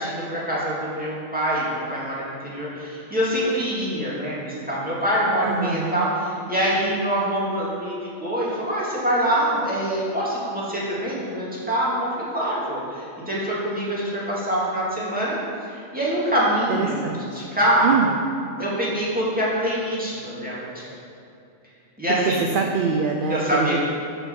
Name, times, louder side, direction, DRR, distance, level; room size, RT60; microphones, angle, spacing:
voice 1, 0.0-17.1 17.3-18.0 18.6-20.9 22.0-22.4 23.3-23.8, equal, 5° right, -8 dB, 2.2 m, -25 dB
voice 2, 5.4-6.1 16.7-17.4 17.8-18.1 22.1-23.8, right 5 dB, 55° right, 3 dB, 0.6 m, -24 dB
6.6 x 6.2 x 7.0 m, 2.6 s
omnidirectional pair, 1.3 m